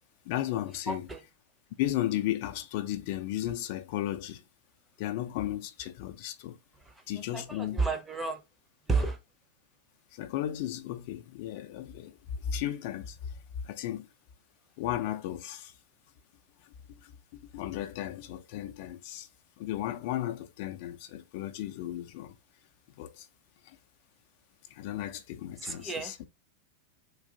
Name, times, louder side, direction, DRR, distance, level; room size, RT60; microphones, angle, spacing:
voice 1, 0.3-1.1 1.8-4.4 5.0-6.6 7.1-7.8 10.1-13.4 13.6-14.1 14.8-15.7 16.6-19.3 19.6-22.4 23.0-23.3 23.6-23.8 24.7-26.2, left 12 dB, 50° left, 0.4 m, -35 dB
voice 2, 0.9-1.2 6.9-7.0 7.3-8.4 8.9-9.2 25.6-26.1, right 3 dB, 10° right, 0.6 m, -31 dB
3.7 x 2.4 x 2.7 m
figure-of-eight pair, 90°, 0 cm